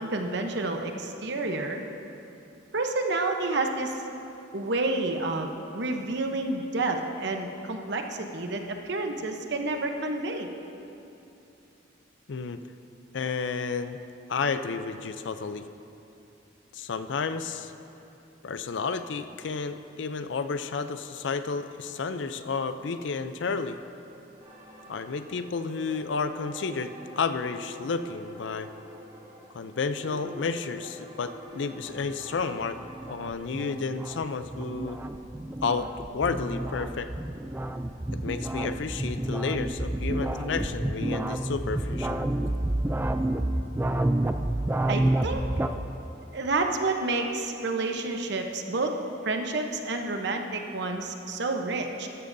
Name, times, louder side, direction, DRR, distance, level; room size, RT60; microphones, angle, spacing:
voice 1, 0.0-1.8 2.7-3.9 4.5-10.5 44.9-45.4 46.3-48.9 49.2-52.1, right 2 dB, 65° right, 4 dB, 0.9 m, -29 dB
voice 2, 12.3-12.6 13.1-14.0 14.3-15.6 16.7-17.7 18.4-23.8 24.9-28.7 29.5-32.8 33.1-35.0 35.6-37.1 38.2-42.2, left 4 dB, 70° left, 10 dB, 0.5 m, -31 dB
sound 1, 24.4-33.7, right 1 dB, 35° right, 1.5 m, -47 dB
sound 2, 31.8-45.7, right 1 dB, 10° right, 0.3 m, -29 dB
13.5 x 12.5 x 2.7 m, 2.8 s
head